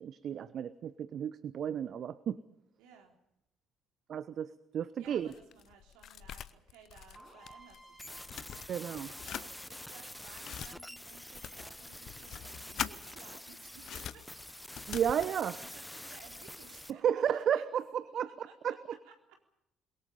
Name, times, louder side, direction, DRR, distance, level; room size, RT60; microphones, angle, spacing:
voice 1, 0.0-2.4 4.1-5.3 8.7-9.1 14.9-15.6 17.0-18.7, right 9 dB, 50° right, 15 dB, 0.9 m, -33 dB
voice 2, 2.8-3.2 5.0-14.3 14.8-17.7 18.1-18.8 19.0-19.5, right 7 dB, 65° right, 3 dB, 3.7 m, -58 dB
sound 1, 5.1-7.8 8.1-9.5 10.1-10.7 11.3-13.0 13.7-15.3, left 9 dB, 50° left, 0.9 m, -43 dB
sound 2, 7.1-10.9, right 2 dB, 25° right, 7.3 m, -58 dB
sound 3, 8.0-16.9, left 1 dB, 5° left, 1.0 m, -47 dB
28.0 x 22.5 x 5.5 m, 0.81 s
figure-of-eight pair, 50°, 0 cm